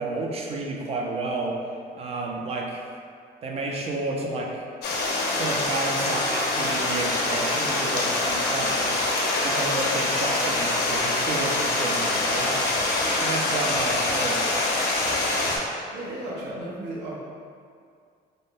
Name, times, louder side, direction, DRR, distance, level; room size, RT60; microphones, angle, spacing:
voice 1, 0.0-1.6 1.9-2.8 3.4-4.6 5.3-9.1 9.4-12.7 13.2-14.4, right 3 dB, 35° right, 0 dB, 0.4 m, -31 dB
Stream, 4.8-15.6, left 2 dB, 70° left, 0.5 m, -25 dB
voice 2, 15.9-17.1, right 1 dB, 80° right, -5 dB, 0.7 m, -34 dB
2.6 x 2.0 x 3.4 m, 2.3 s
cardioid pair, 110°, 17 cm